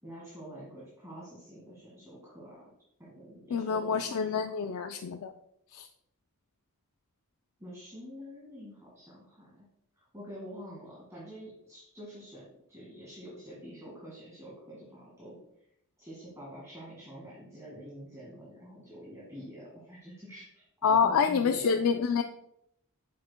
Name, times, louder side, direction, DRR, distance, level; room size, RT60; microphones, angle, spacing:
voice 1, 0.0-2.6 3.0-4.8 7.6-9.7 10.0-15.4 16.0-21.8, equal, 15° right, -6 dB, 1.9 m, -47 dB
voice 2, 3.5-5.3 5.7-5.9 20.8-22.2, left 6 dB, 70° left, 7 dB, 0.4 m, -27 dB
8.2 x 6.5 x 2.2 m, 0.76 s
head